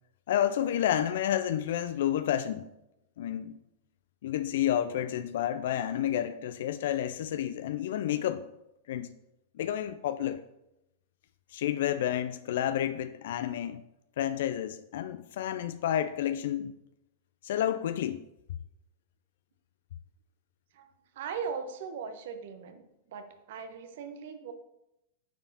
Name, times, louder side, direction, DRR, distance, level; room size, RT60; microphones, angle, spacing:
voice 1, 0.3-2.7 3.2-3.6 4.2-8.5 8.9-9.1 9.5-10.4 11.5-13.8 14.2-16.7 17.4-18.2, left 11 dB, 65° left, 0.4 m, -30 dB
voice 2, 21.2-22.8 23.1-24.5, right 6 dB, 60° right, 0.9 m, -39 dB
9.3 x 6.9 x 2.8 m
figure-of-eight pair, 95°, 0 cm